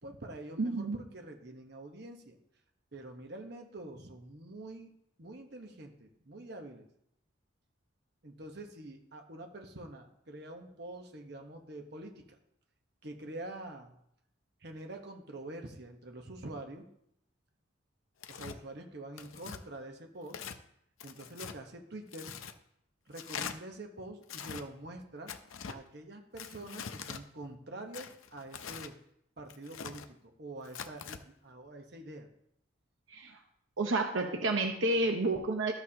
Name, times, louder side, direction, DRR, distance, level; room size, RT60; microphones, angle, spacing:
voice 1, 0.0-2.4 2.9-6.9 8.2-12.3 13.0-13.9 14.6-16.9 18.3-20.4 21.0-22.3 23.1-25.3 25.7-29.0 29.4-32.3, right 2 dB, 55° right, 3 dB, 1.1 m, -46 dB
voice 2, 0.6-1.0 33.1-33.3 33.8-35.7, right 2 dB, 75° right, 3 dB, 0.9 m, -30 dB
Tearing, 18.2-18.6 19.2-19.6 20.3-20.6 21.0-21.6 22.1-22.6 23.1-23.6 24.2-24.6 25.3-25.8 26.4-27.2 27.9-28.9 29.5-30.1 30.7-31.2, left 7 dB, 90° left, 0.6 m, -43 dB
13.0 x 6.9 x 2.9 m, 0.73 s
head